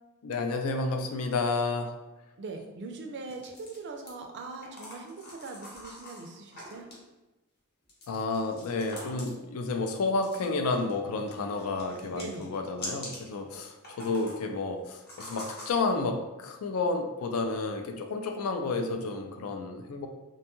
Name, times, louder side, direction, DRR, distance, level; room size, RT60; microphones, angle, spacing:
voice 1, 0.2-1.9 8.1-20.1, left 3 dB, 80° left, 5 dB, 0.4 m, -31 dB
voice 2, 2.4-6.9 12.1-12.5, right 3 dB, 55° right, 3 dB, 0.4 m, -41 dB
sound 1, 3.3-4.1 4.6-7.0 7.9-9.5 10.2-10.9 11.2-13.3 13.7-14.4 15.1-15.7, left 1 dB, 50° left, 0.9 m, -44 dB
2.5 x 2.2 x 2.9 m, 1.1 s
head